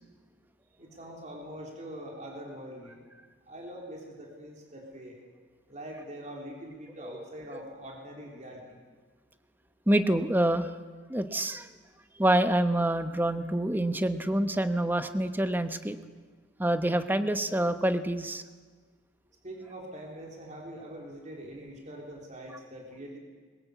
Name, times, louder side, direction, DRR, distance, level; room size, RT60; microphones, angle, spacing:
voice 1, 0.8-3.0 3.5-5.2 5.7-8.8 19.4-23.2, right 1 dB, 35° right, 0 dB, 3.7 m, -43 dB
voice 2, 9.9-10.7 11.1-11.7 12.2-16.0 16.6-18.4, right 1 dB, 10° right, 9 dB, 0.9 m, -26 dB
21.5 x 20.0 x 8.3 m, 1.4 s
head